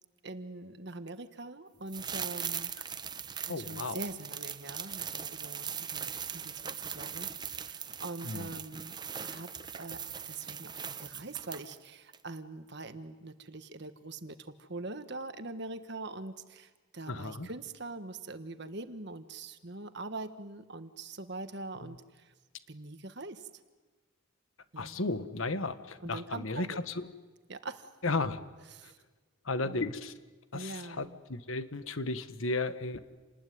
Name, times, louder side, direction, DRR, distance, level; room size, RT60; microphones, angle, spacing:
voice 1, 0.2-3.0 3.5-6.1 6.3-7.3 7.6-8.9 9.2-9.5 9.7-10.0 10.3-22.3 22.7-23.5 24.7-25.1 26.0-26.8 27.5-27.9 28.7-29.0 29.6-29.9 30.5-31.2, right 2 dB, 55° right, 10 dB, 1.4 m, -43 dB
sound 1, 1.9-11.9 12.1-12.2, right 7 dB, 20° right, 0.9 m, -40 dB
voice 2, 3.5-4.0 8.2-8.5 17.1-17.5 21.8-21.9 24.8-27.1 28.0-28.4 28.8-28.9 29.4-30.1 30.5-33.0, left 3 dB, 80° left, 11 dB, 1.4 m, -34 dB
28.5 x 20.0 x 9.4 m, 1.3 s
head